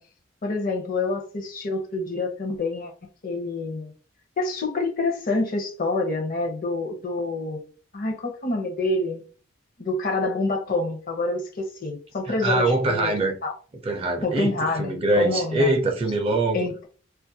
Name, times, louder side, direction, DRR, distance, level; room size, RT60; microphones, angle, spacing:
voice 1, 0.4-2.9 3.2-3.9 4.4-7.7 7.9-9.2 9.8-13.1 13.4-13.5 14.2-15.7 16.5-16.9, left 2 dB, 50° left, 0.6 m, -27 dB
voice 2, 12.3-13.4 13.8-16.7, right 2 dB, 30° right, 0.4 m, -23 dB
2.3 x 2.1 x 2.6 m
head